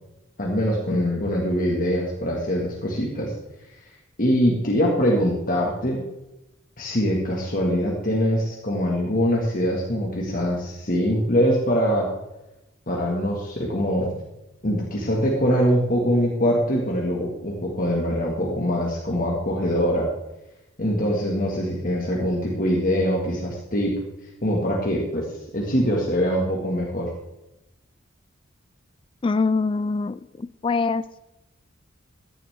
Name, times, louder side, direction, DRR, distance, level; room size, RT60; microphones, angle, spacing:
voice 1, 0.4-3.3 4.2-6.0 6.8-12.1 12.9-14.1 14.6-20.1 20.8-23.9 24.4-25.2 25.5-27.1, equal, 45° left, -2 dB, 2.0 m, -23 dB
voice 2, 29.2-31.0, left 4 dB, 25° left, 14 dB, 0.3 m, -24 dB
15.0 x 10.5 x 3.6 m, 0.97 s
head